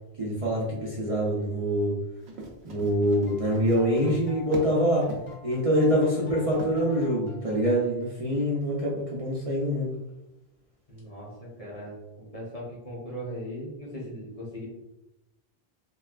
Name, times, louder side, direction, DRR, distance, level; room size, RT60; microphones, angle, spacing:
voice 1, 0.2-1.9 2.6-5.0 5.4-9.9, equal, 40° right, -6 dB, 0.6 m, -25 dB
Run, 2.2-4.8 5.1-5.3 5.8-6.1 6.6-6.8, right 2 dB, 90° right, 0.9 m, -41 dB
sound 1, 3.0-8.2, left 5 dB, 70° left, 0.9 m, -44 dB
voice 2, 10.9-14.7, equal, 40° left, -5 dB, 0.9 m, -39 dB
3.2 x 2.3 x 2.3 m, 0.92 s
omnidirectional pair, 1.1 m